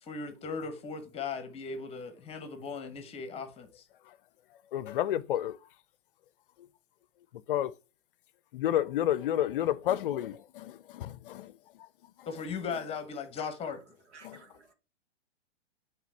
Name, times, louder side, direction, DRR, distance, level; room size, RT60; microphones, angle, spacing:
voice 1, 0.0-3.9 12.3-13.8, left 5 dB, 15° left, 1.1 m, -38 dB
voice 2, 4.7-5.6 6.6-6.7 7.3-7.7 8.5-12.3 14.2-14.4, left 11 dB, 50° left, 0.6 m, -31 dB
voice 3, 14.1-14.7, right 4 dB, 75° right, 2.1 m, -55 dB
8.2 x 3.7 x 4.5 m
hypercardioid pair, 125°, 34 cm